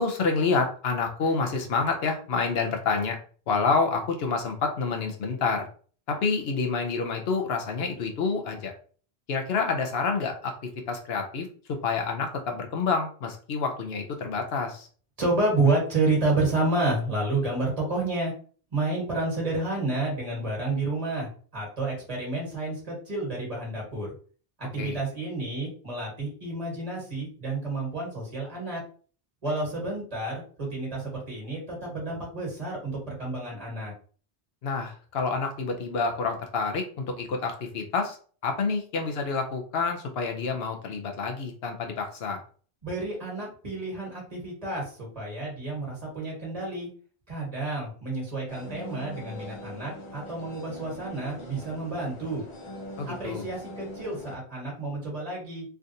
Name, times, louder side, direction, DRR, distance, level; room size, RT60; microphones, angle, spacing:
voice 1, 0.0-3.2 3.5-5.7 6.1-8.7 9.3-10.5 10.9-14.9 24.8-25.0 34.6-38.2 38.4-42.4 53.0-53.5, left 4 dB, 75° left, 3 dB, 0.9 m, -28 dB
voice 2, 15.2-18.3 18.7-24.1 24.6-28.8 29.4-33.9 42.8-46.9 47.3-52.4 53.1-55.6, right 2 dB, 40° right, -3 dB, 1.5 m, -30 dB
sound 1, 48.5-54.4, equal, 35° left, 0.6 m, -42 dB
3.4 x 2.4 x 2.7 m, 0.42 s
omnidirectional pair, 1.0 m